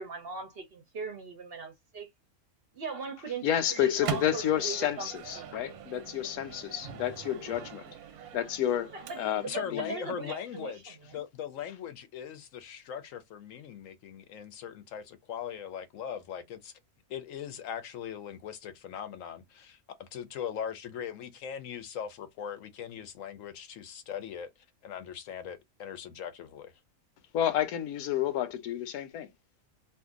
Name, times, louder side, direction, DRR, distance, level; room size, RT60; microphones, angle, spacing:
voice 1, 0.0-2.1 2.7-5.1 5.4-5.5 8.9-10.7 11.1-11.2, right 5 dB, 55° right, 0.7 m, -39 dB
voice 2, 3.4-7.9 8.3-8.9 9.2-9.9 27.3-29.3, left 11 dB, 90° left, 1.1 m, -30 dB
Microwave oven, 3.6-9.6, right 8 dB, 90° right, 1.1 m, -42 dB
voice 3, 9.4-16.7 17.1-24.5 24.8-26.7, left 8 dB, 70° left, 1.0 m, -40 dB
2.6 x 2.5 x 3.6 m
omnidirectional pair, 1.5 m